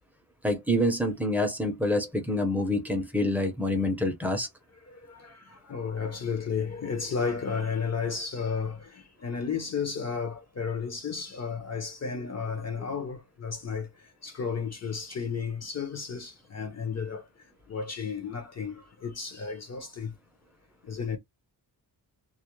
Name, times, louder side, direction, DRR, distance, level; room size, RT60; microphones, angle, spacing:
voice 1, 0.4-4.5, left 1 dB, 5° right, 0.6 m, -27 dB
voice 2, 4.9-13.9 14.2-17.2 17.7-20.1 20.9-21.2, left 5 dB, 40° left, 0.6 m, -33 dB
2.3 x 2.0 x 2.9 m
wide cardioid pair, 140°, 40 cm